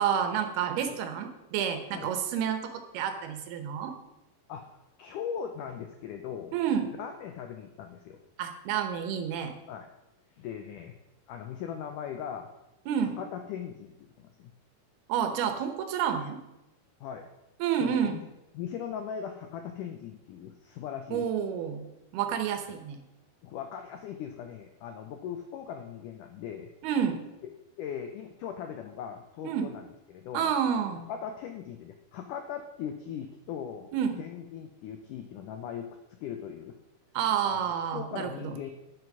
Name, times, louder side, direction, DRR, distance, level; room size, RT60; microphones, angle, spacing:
voice 1, 0.0-3.9 6.5-6.9 8.4-9.5 12.9-13.2 15.1-16.4 17.6-18.2 21.1-21.9 22.1-23.0 26.8-27.2 29.4-29.7 30.3-31.1 33.9-34.2 37.1-38.5, right 8 dB, 75° right, 7 dB, 3.0 m, -29 dB
voice 2, 4.5-6.6 7.0-8.2 9.7-9.9 10.4-11.0 11.3-12.5 13.2-14.5 17.0-17.3 17.8-18.2 18.5-21.3 23.4-26.7 27.8-30.5 31.1-33.9 34.2-36.8 37.4-38.7, left 8 dB, 85° left, 6 dB, 1.8 m, -39 dB
10.5 x 7.9 x 6.1 m, 0.94 s
omnidirectional pair, 4.6 m